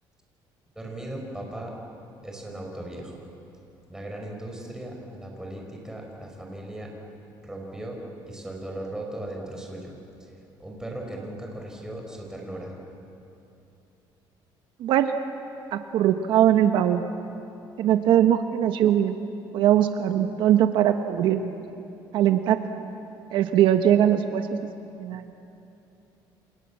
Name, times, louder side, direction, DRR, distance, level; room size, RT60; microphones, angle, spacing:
voice 1, 0.8-1.8 2.2-3.2 3.9-6.9 7.4-8.0 8.3-9.9 10.6-12.7, right 1 dB, 5° right, 0 dB, 5.5 m, -37 dB
voice 2, 14.8-15.1 15.7-17.0 17.8-19.2 19.5-21.5 22.1-22.6 23.3-24.6 25.0-25.3, right 10 dB, 70° right, 7 dB, 1.2 m, -21 dB
28.5 x 28.0 x 7.4 m, 2.8 s
cardioid pair, 140°, 9 cm